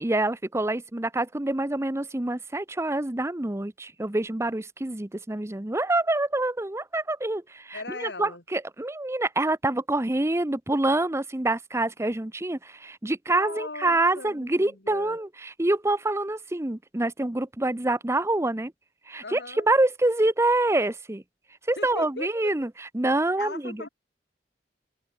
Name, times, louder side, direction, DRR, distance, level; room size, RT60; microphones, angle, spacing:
voice 1, 0.0-18.7 19.1-21.2 21.7-23.8, right 2 dB, 15° right, 0.8 m, -26 dB
voice 2, 7.7-8.4 13.3-15.2 19.2-19.7 21.8-22.5 23.4-23.9, left 3 dB, 65° left, 3.3 m, -39 dB
head